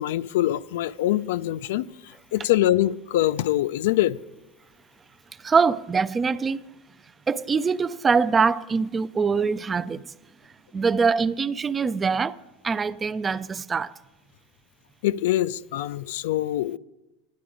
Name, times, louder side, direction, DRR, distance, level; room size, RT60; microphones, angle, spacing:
voice 1, 0.0-4.2 15.0-16.8, left 14 dB, 80° left, 0.3 m, -24 dB
voice 2, 5.4-6.6 7.3-10.1 10.7-12.4 12.6-13.9, right 5 dB, 20° right, 0.3 m, -23 dB
11.5 x 10.5 x 5.0 m
supercardioid pair, 130°, 0 cm